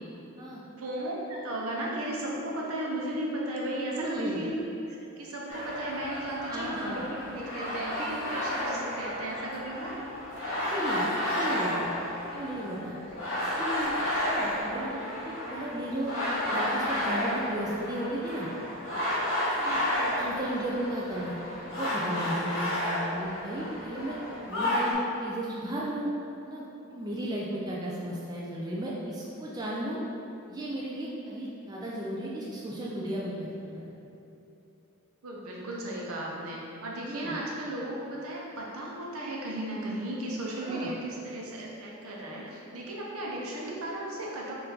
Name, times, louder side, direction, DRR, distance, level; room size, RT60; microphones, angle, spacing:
voice 1, 0.8-4.6 4.8-10.0 13.1-13.6 35.2-44.5, right 1 dB, 70° right, -3 dB, 0.7 m, -35 dB
voice 2, 3.9-4.4 6.4-7.0 9.3-9.5 10.6-11.9 12.3-13.0 13.6-13.9 14.2-18.5 19.6-21.3 21.7-24.2 24.5-24.9 25.2-26.1 26.4-26.6 26.9-30.0 30.5-33.9 37.1-37.4 40.6-40.9, right 1 dB, 20° right, -5 dB, 0.3 m, -35 dB
sound 1, 5.5-24.9, left 1 dB, 65° left, 1.1 m, -32 dB
4.3 x 2.6 x 3.8 m, 2.9 s
head